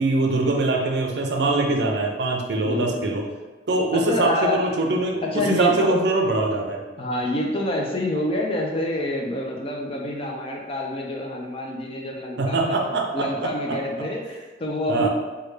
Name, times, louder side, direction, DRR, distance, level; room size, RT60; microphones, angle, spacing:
voice 1, 0.0-3.2 3.7-6.8 12.4-13.5 14.9-15.1, right 2 dB, 70° right, 1 dB, 0.5 m, -23 dB
voice 2, 2.6-3.1 3.9-4.6 5.2-6.0 7.0-15.1, left 1 dB, 30° left, 0 dB, 0.4 m, -27 dB
3.2 x 2.3 x 3.1 m, 1.3 s
head